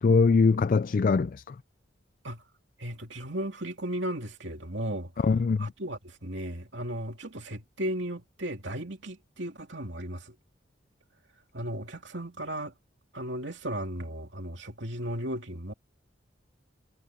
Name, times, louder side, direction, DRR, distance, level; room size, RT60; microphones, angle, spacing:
voice 1, 0.0-1.5 5.2-5.7, left 4 dB, 45° left, 0.3 m, -22 dB
voice 2, 2.8-5.2 5.6-10.3 11.5-12.8 13.1-15.7, right 1 dB, 65° right, 2.8 m, -35 dB
head